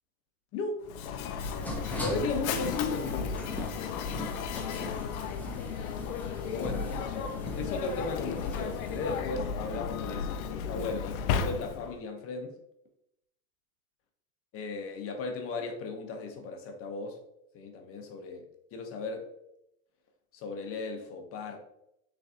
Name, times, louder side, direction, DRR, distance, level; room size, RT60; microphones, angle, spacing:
voice 1, 0.5-0.8 2.0-3.5 6.4-12.5 14.5-17.2 17.5-18.4 18.7-19.3 20.3-21.6, left 3 dB, 35° left, 4 dB, 0.7 m, -36 dB
Mechanisms, 0.8-12.0, left 6 dB, 80° left, 0.5 m, -34 dB
sound 1, 1.4-9.2, left 1 dB, 5° left, 0.4 m, -40 dB
3.8 x 3.3 x 2.6 m, 0.79 s
hypercardioid pair, 110°, 42 cm